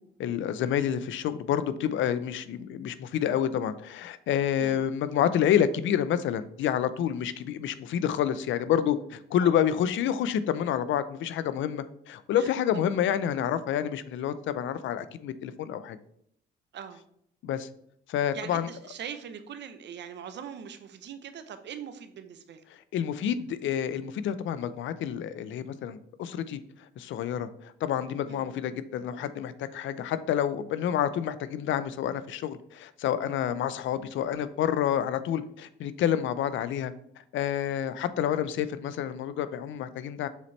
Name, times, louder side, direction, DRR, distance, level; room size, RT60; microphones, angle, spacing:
voice 1, 0.2-16.0 17.4-17.7 18.1-18.7 22.9-26.6 27.0-36.9 37.3-40.3, left 9 dB, 75° left, 14 dB, 0.5 m, -28 dB
voice 2, 18.3-22.6 28.3-28.5, right 8 dB, 65° right, 10 dB, 0.8 m, -41 dB
7.0 x 4.2 x 3.2 m, 0.70 s
cardioid pair, 90°, 20 cm